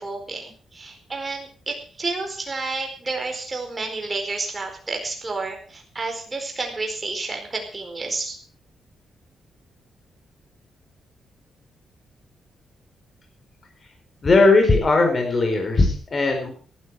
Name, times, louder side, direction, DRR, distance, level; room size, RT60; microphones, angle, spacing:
voice 1, 0.0-8.4, right 3 dB, 20° right, 3 dB, 4.5 m, -30 dB
voice 2, 14.2-16.5, left 3 dB, 35° left, 4 dB, 4.7 m, -18 dB
18.0 x 12.5 x 4.9 m, 0.40 s
wide cardioid pair, 140°, 0 cm